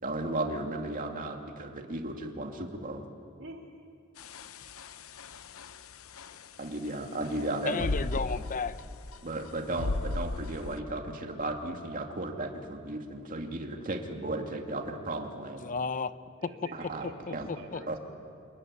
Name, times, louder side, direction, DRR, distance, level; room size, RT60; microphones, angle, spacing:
voice 1, 0.0-3.0 6.6-7.9 9.2-15.6 16.7-17.0 17.3-17.5 17.9-18.0, right 2 dB, 40° right, 3 dB, 2.5 m, -35 dB
voice 2, 3.4-3.9 16.4-18.0, right 2 dB, 70° right, 1 dB, 3.6 m, -47 dB
sound 1, 4.2-10.8, left 2 dB, 85° left, 0.9 m, -37 dB
voice 3, 7.6-8.8 15.6-16.1 17.5-17.8, left 4 dB, 40° left, 13 dB, 0.7 m, -33 dB
26.5 x 21.5 x 9.9 m, 2.4 s
head